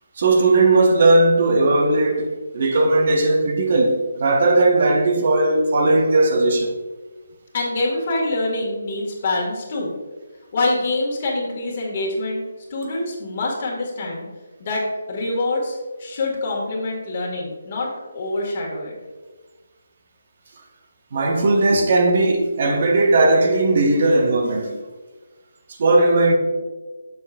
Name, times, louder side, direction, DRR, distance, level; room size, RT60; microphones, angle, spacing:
voice 1, 0.2-6.7 21.1-24.8 25.8-26.3, right 2 dB, 45° right, 0.8 m, -17 dB
voice 2, 7.5-9.9 10.5-12.4 12.7-14.3 14.6-17.9 18.1-19.0, left 2 dB, 40° left, 2.0 m, -25 dB
6.8 x 6.6 x 2.5 m
figure-of-eight pair, 155°, 0 cm